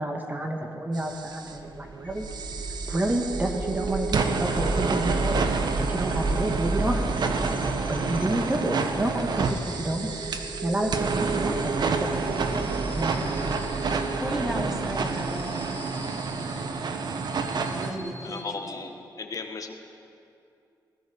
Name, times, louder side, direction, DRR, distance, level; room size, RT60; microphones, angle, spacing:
voice 1, 0.0-2.3 2.9-5.5 5.8-7.4 7.9-10.1 10.6-13.5, right 1 dB, 25° right, 2 dB, 1.9 m, -30 dB
sound 1, 0.9-1.6 2.2-17.9, right 4 dB, 65° right, 1.7 m, -29 dB
sound 2, 1.5-16.6, right 3 dB, 80° right, 1.7 m, -33 dB
sound 3, 2.0-18.5, left 2 dB, 20° left, 4.1 m, -50 dB
voice 2, 14.2-15.9 17.7-18.5, equal, 5° right, -1 dB, 3.7 m, -34 dB
voice 3, 18.2-19.7, left 4 dB, 50° left, 4 dB, 1.8 m, -36 dB
23.0 x 19.0 x 7.2 m, 2.5 s
wide cardioid pair, 105°, 8 cm